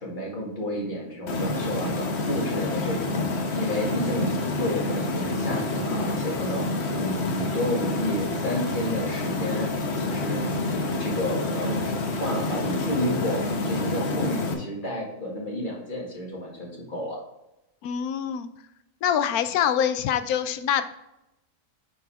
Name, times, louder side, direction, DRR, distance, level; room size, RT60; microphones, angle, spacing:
voice 1, 0.0-3.2 3.6-9.7 9.9-11.8 12.2-17.2, equal, 35° left, -3 dB, 2.2 m, -31 dB
sound 1, 1.3-14.5, left 2 dB, 50° left, 1.2 m, -28 dB
voice 2, 17.8-18.5 19.0-20.9, left 9 dB, 80° left, 11 dB, 1.1 m, -25 dB
8.6 x 4.9 x 3.5 m, 0.90 s
omnidirectional pair, 1.6 m